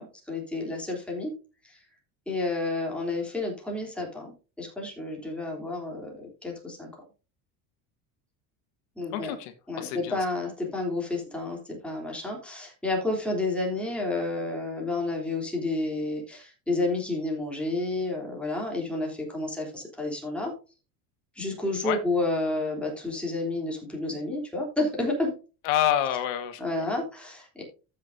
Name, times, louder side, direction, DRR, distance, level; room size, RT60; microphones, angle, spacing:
voice 1, 0.0-1.3 1.6-1.8 2.3-6.9 9.0-9.3 9.7-20.5 21.3-25.3 26.6-27.6, left 2 dB, 5° left, 3.2 m, -30 dB
voice 2, 9.1-10.2 21.8-22.0 25.6-26.9, left 11 dB, 85° left, 1.7 m, -28 dB
14.0 x 6.5 x 2.6 m
cardioid pair, 160°, 41 cm